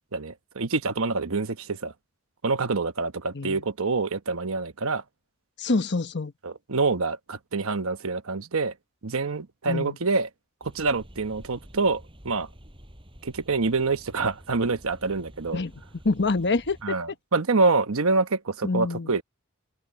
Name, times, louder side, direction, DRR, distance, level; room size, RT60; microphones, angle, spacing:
voice 1, 0.1-1.9 2.4-5.0 6.4-8.7 9.0-10.3 10.6-12.5 13.2-15.6 16.8-19.2, right 3 dB, 65° right, 1.1 m, -26 dB
voice 2, 5.6-6.3 9.7-10.0 15.5-15.7 16.0-16.8 18.6-19.1, left 3 dB, 55° left, 1.1 m, -26 dB
sound 1, 10.6-16.8, equal, 25° right, 7.4 m, -49 dB
open air
head